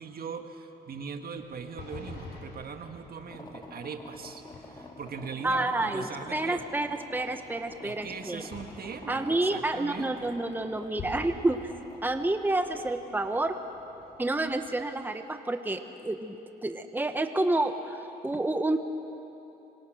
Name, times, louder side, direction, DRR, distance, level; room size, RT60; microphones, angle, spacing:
voice 1, 0.0-4.4 4.7-6.6 7.8-10.3, right 5 dB, 60° right, 6 dB, 1.7 m, -40 dB
sound 1, 1.3-14.8, left 3 dB, 85° left, 6.3 m, -49 dB
sound 2, 3.3-12.3, left 2 dB, 25° left, 2.3 m, -48 dB
voice 2, 5.4-6.0 6.3-8.4 9.1-11.7 12.0-13.6 14.2-16.4 16.6-18.8, right 2 dB, 10° right, 7 dB, 1.1 m, -29 dB
26.0 x 25.5 x 6.5 m, 2.9 s
cardioid pair, 95°, 17 cm